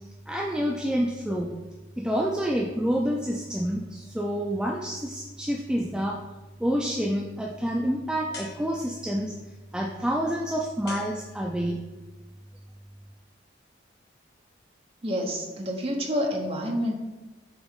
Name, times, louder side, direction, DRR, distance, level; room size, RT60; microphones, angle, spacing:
voice 1, 0.3-1.5 2.0-6.2 6.6-9.3 9.7-11.8, equal, 5° right, -2 dB, 0.4 m, -28 dB
sound 1, 8.3-9.2 10.9-11.8, left 3 dB, 60° left, 1.4 m, -43 dB
voice 2, 15.0-16.9, equal, 30° right, 1 dB, 0.9 m, -28 dB
6.9 x 4.0 x 3.7 m, 1.1 s
head